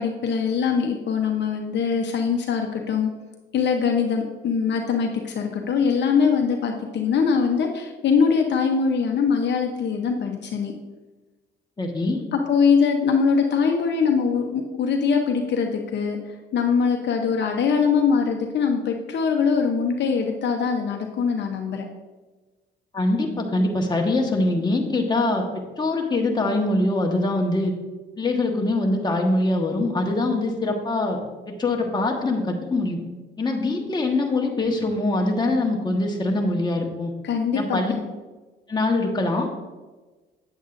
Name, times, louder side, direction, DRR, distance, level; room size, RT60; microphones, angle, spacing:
voice 1, 0.0-3.1 3.5-10.7 12.3-16.2 16.5-21.8 37.2-38.0, left 6 dB, 60° left, 3 dB, 0.9 m, -22 dB
voice 2, 11.8-12.2 22.9-27.7 28.2-31.2 31.5-33.0 33.4-37.1 37.5-37.9 38.7-39.6, left 2 dB, 20° left, 0 dB, 1.4 m, -23 dB
9.1 x 7.9 x 2.6 m, 1.2 s
cardioid pair, 90°, 20 cm